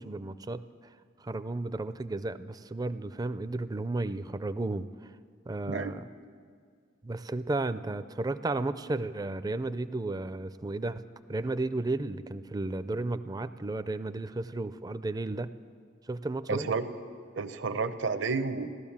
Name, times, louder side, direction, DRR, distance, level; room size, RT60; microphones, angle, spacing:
voice 1, 0.0-5.1 5.5-6.0 7.0-11.0 11.3-15.5 16.0-16.7, right 2 dB, 20° right, 13 dB, 0.4 m, -33 dB
voice 2, 16.5-16.9 17.4-18.7, right 4 dB, 70° right, 10 dB, 0.8 m, -30 dB
16.0 x 12.5 x 7.2 m, 2.1 s
head